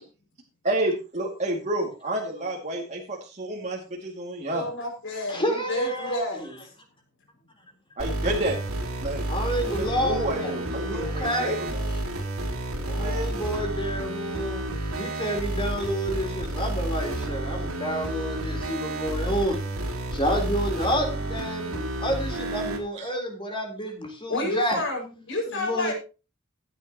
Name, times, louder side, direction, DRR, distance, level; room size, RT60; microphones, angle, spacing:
voice 1, 0.6-4.7 8.0-8.6 9.0-9.3 9.6-12.0 13.0-13.3 22.9-23.1, right 1 dB, 35° right, -2 dB, 2.4 m, -30 dB
voice 2, 4.5-6.7 24.3-25.9, left 1 dB, 60° left, 1 dB, 5.9 m, -30 dB
voice 3, 5.3-6.5 9.3-10.5 10.8-11.5 12.8-14.7 15.0-19.6 20.1-24.8 25.5-25.9, equal, 25° left, 3 dB, 3.8 m, -29 dB
sound 1, 8.0-22.8, right 1 dB, 90° right, 3.4 m, -30 dB
15.5 x 10.0 x 3.0 m, 0.31 s
head